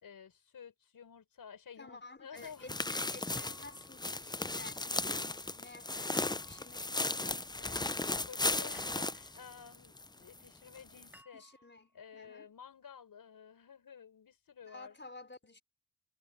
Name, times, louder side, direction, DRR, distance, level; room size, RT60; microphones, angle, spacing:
voice 1, 0.0-2.9 7.6-11.4 11.9-15.0, left 7 dB, 85° left, 5.6 m, -53 dB
voice 2, 1.8-7.4 11.3-12.5 14.6-15.6, left 3 dB, 35° left, 4.6 m, -53 dB
sound 1, 2.4-10.1 10.4-10.5 11.0-11.1, left 2 dB, 15° left, 0.6 m, -36 dB
sound 2, 3.4-4.3 6.1-6.9 8.7-9.4 11.1-11.9, equal, 5° right, 3.8 m, -60 dB
cardioid pair, 45°, 33 cm